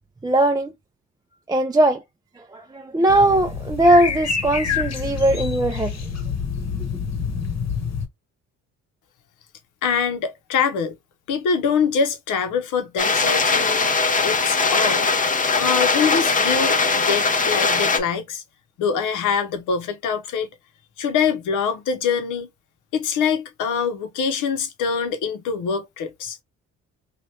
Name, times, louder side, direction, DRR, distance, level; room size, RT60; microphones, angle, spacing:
voice 1, 0.2-0.7 1.5-2.0 2.4-5.9, right 1 dB, 15° right, 0.4 m, -19 dB
sound 1, 3.1-8.1, left 6 dB, 60° left, 1.0 m, -27 dB
voice 2, 9.8-11.0 11.3-15.1 15.5-18.4 18.8-20.5 21.0-22.5 22.9-26.4, left 6 dB, 85° left, 0.9 m, -24 dB
sound 2, 13.0-18.0, left 4 dB, 25° left, 0.6 m, -20 dB
2.9 x 2.4 x 3.2 m
cardioid pair, 90°, 30 cm